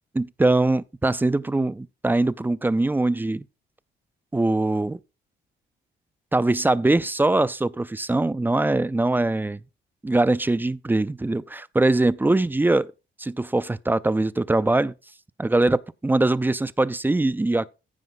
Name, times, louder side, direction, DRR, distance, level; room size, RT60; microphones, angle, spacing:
voice 1, 0.2-3.5 4.3-5.0 6.3-9.6 10.0-12.9 13.2-14.9 15.4-17.7, right 2 dB, 10° right, 0.4 m, -22 dB
14.5 x 5.0 x 3.9 m
cardioid pair, 90°, 20 cm